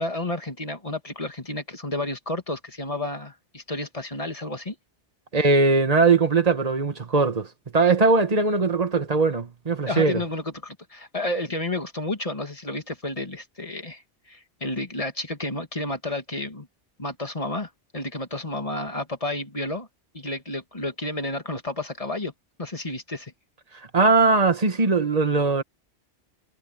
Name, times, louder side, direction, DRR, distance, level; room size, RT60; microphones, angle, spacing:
voice 1, 0.0-4.8 9.8-16.7 17.0-19.9 20.1-22.3 22.6-23.3, left 2 dB, 30° left, 2.2 m, -31 dB
voice 2, 5.3-7.5 7.7-10.2 23.9-25.6, right 3 dB, 35° right, 1.4 m, -20 dB
omnidirectional pair, 1.2 m